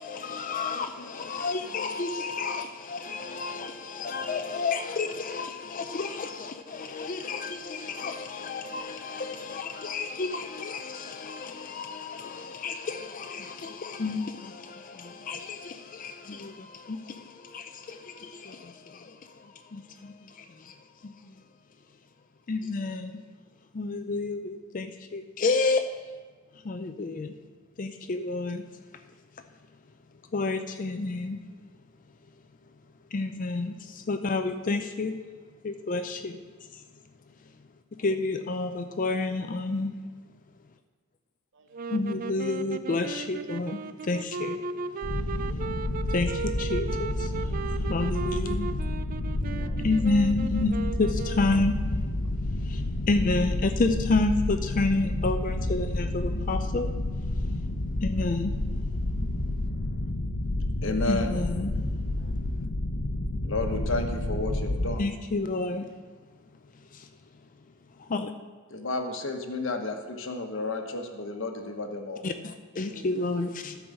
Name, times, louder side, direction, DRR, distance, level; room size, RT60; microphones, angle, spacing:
voice 1, 0.0-20.7 21.0-21.4 22.5-23.2 23.7-25.9 26.6-27.3 27.8-28.6 30.3-31.4 33.1-35.2 35.6-36.4 38.0-40.0 41.9-44.6 46.1-48.8 49.8-51.8 52.6-56.9 58.0-58.6 61.1-61.8 65.0-65.9 66.9-67.1 68.0-68.3 72.2-73.8, left 3 dB, 40° left, 0.4 m, -30 dB
voice 2, 41.5-42.2 49.4-49.9 52.2-52.3 62.0-62.5 72.9-73.4, right 3 dB, 55° right, 0.7 m, -51 dB
sound 1, 41.7-51.7, right 4 dB, 40° right, 0.3 m, -36 dB
sound 2, 45.0-65.0, left 1 dB, 85° left, 0.8 m, -30 dB
voice 3, 60.8-61.3 63.4-65.0 68.7-72.2, left 2 dB, 60° left, 1.1 m, -31 dB
12.5 x 4.8 x 6.3 m
head